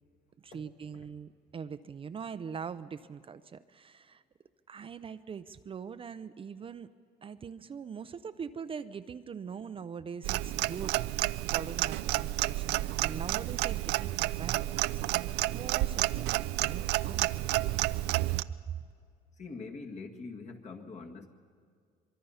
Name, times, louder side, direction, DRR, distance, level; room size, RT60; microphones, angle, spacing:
voice 1, 0.4-4.2 4.7-6.9 7.2-11.0 11.5-14.9 15.5-16.2 16.6-17.8 18.7-18.8, right 6 dB, 30° right, 11 dB, 0.6 m, -42 dB
Clock, 10.2-18.4, right 17 dB, 85° right, 0.5 m, -30 dB
voice 2, 19.3-21.3, left 4 dB, 45° left, 2 dB, 1.9 m, -43 dB
24.0 x 23.0 x 5.7 m, 2.1 s
cardioid pair, 110°, 17 cm